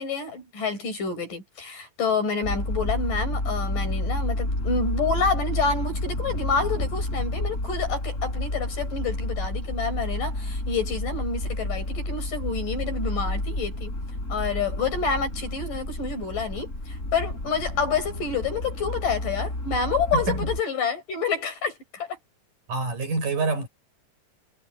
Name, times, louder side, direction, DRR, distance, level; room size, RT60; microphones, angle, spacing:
voice 1, 0.0-13.9 14.3-22.2, left 4 dB, 75° left, 7.6 m, -28 dB
sound 1, 2.4-20.6, left 1 dB, 20° left, 7.7 m, -30 dB
voice 2, 20.1-20.5 22.7-23.7, right 3 dB, 70° right, 7.1 m, -26 dB
omnidirectional pair, 3.9 m